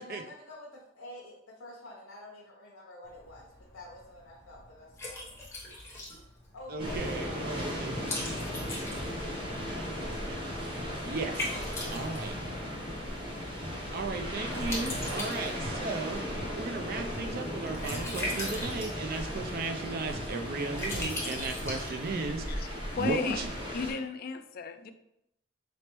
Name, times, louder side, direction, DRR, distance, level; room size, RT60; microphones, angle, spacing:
voice 1, 0.0-5.3 6.5-9.7 11.2-11.3 11.8-12.4, left 1 dB, 85° left, -3 dB, 0.8 m, -49 dB
Liquid, 3.0-22.5, left 1 dB, 15° left, 0.8 m, -41 dB
voice 2, 6.7-7.9 11.0-11.3 11.9-12.3 13.9-16.2 16.6-23.5, right 3 dB, 45° right, 5 dB, 0.4 m, -35 dB
sound 1, 6.8-23.9, equal, 25° right, 0.9 m, -36 dB
Breathing, 13.9-14.3 14.7-15.0 15.4-15.8 16.2-16.5 16.9-17.3 17.7-18.0 18.4-18.8 19.2-19.5 19.9-20.3 20.7-21.0 21.4-21.8, right 1 dB, 80° right, 0.7 m, -43 dB
voice 3, 23.0-23.4 23.7-24.9, left 4 dB, 45° left, 9 dB, 0.3 m, -34 dB
4.0 x 3.3 x 3.0 m, 0.81 s
head